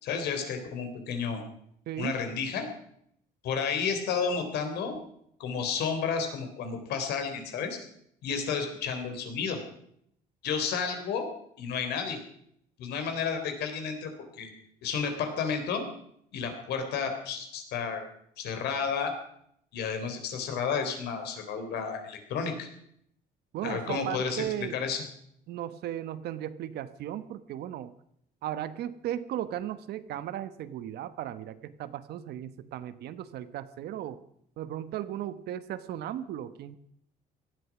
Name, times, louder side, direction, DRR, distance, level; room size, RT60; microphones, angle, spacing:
voice 1, 0.0-1.4 2.0-2.7 3.4-5.0 5.4-7.8 8.2-9.6 10.4-11.3 11.6-12.2 12.8-14.5 14.8-15.9 16.3-18.0 18.4-19.1 19.7-22.7 23.6-25.0, left 6 dB, 75° left, 6 dB, 3.6 m, -31 dB
voice 2, 1.9-2.2 23.5-24.8 25.5-27.9 28.4-34.2 34.6-36.8, right 11 dB, 75° right, 13 dB, 1.1 m, -36 dB
17.5 x 13.0 x 6.1 m, 0.70 s
cardioid pair, 110°, 17 cm